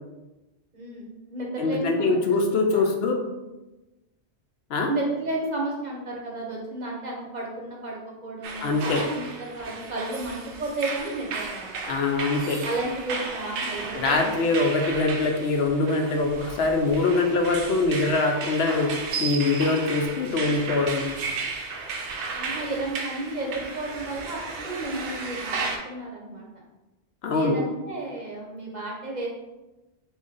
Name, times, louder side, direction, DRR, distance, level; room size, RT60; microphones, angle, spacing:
voice 1, 0.7-2.2 2.7-2.9 4.9-11.8 12.6-14.4 22.3-26.5 27.3-29.3, right 2 dB, 45° right, -2 dB, 0.8 m, -32 dB
voice 2, 1.6-3.2 4.7-4.9 8.6-9.0 11.9-12.6 13.9-18.9 19.2-21.1 27.2-27.6, left 3 dB, 70° left, 3 dB, 0.8 m, -23 dB
sound 1, 8.4-25.8, right 4 dB, 85° right, 0.9 m, -34 dB
3.9 x 2.9 x 3.8 m, 1.1 s
omnidirectional pair, 1.1 m